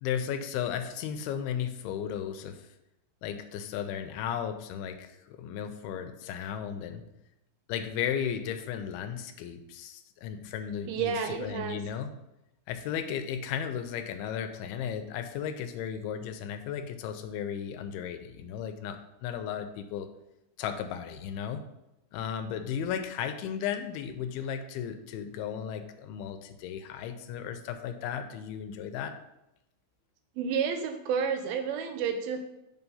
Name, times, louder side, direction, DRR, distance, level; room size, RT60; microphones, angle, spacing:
voice 1, 0.0-2.7 3.2-7.0 7.7-12.1 12.7-20.1 20.6-21.6 22.1-29.1, left 8 dB, 85° left, 8 dB, 2.5 m, -35 dB
voice 2, 10.9-11.8 30.4-32.4, right 6 dB, 80° right, 7 dB, 2.4 m, -30 dB
5.5 x 4.7 x 5.5 m, 0.89 s
omnidirectional pair, 4.5 m